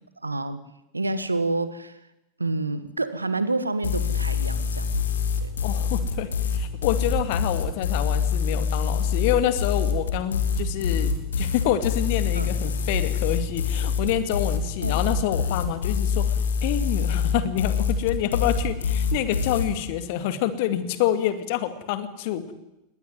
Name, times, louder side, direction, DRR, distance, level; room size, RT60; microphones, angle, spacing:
voice 1, 0.2-0.6 0.9-2.0 2.4-5.0 5.4-5.5 12.3-12.5 14.8-15.0, right 2 dB, 80° right, 14 dB, 1.5 m, -28 dB
sound 1, 3.8-19.7, left 6 dB, 65° left, 2.9 m, -25 dB
voice 2, 5.6-16.3 16.6-22.5, left 11 dB, 50° left, 11 dB, 2.3 m, -27 dB
20.5 x 19.0 x 9.6 m, 0.92 s
figure-of-eight pair, 90°, 0 cm